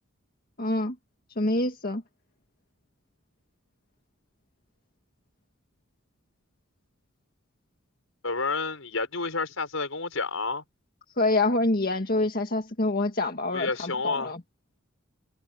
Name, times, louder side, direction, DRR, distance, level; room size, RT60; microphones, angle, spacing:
voice 1, 0.6-1.0 1.4-2.0 11.2-14.4, left 2 dB, 45° left, 1.9 m, -26 dB
voice 2, 8.2-10.6 13.5-14.3, left 3 dB, 80° left, 5.8 m, -30 dB
head